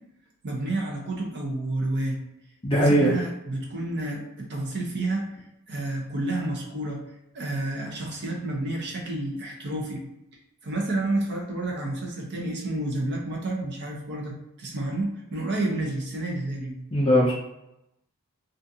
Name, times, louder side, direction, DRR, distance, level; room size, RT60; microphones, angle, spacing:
voice 1, 0.4-2.2 2.7-5.3 5.7-7.0 7.3-10.0 10.6-16.8, right 2 dB, 50° right, 0 dB, 0.7 m, -30 dB
voice 2, 2.6-3.1 16.9-17.3, equal, 25° left, -6 dB, 0.5 m, -19 dB
2.5 x 2.4 x 2.7 m, 0.86 s
head